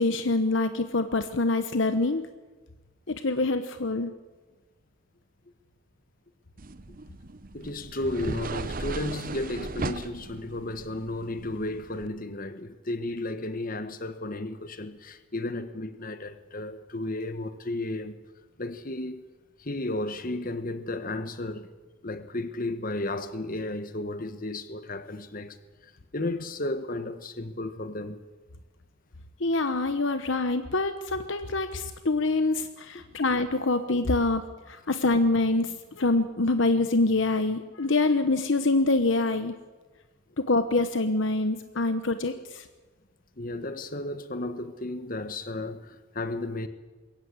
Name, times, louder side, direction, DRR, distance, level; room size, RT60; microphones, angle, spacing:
voice 1, 0.0-2.2 3.1-4.1 29.4-34.4 34.7-39.5 40.4-42.6, left 2 dB, 60° left, 1.0 m, -25 dB
sound 1, 6.6-12.1, right 3 dB, 40° right, 0.8 m, -37 dB
voice 2, 7.5-18.2 18.6-19.2 19.6-21.7 22.0-25.6 25.8-28.2 41.7-41.9 43.4-46.7, left 2 dB, 40° left, 1.3 m, -33 dB
22.0 x 17.0 x 8.0 m
head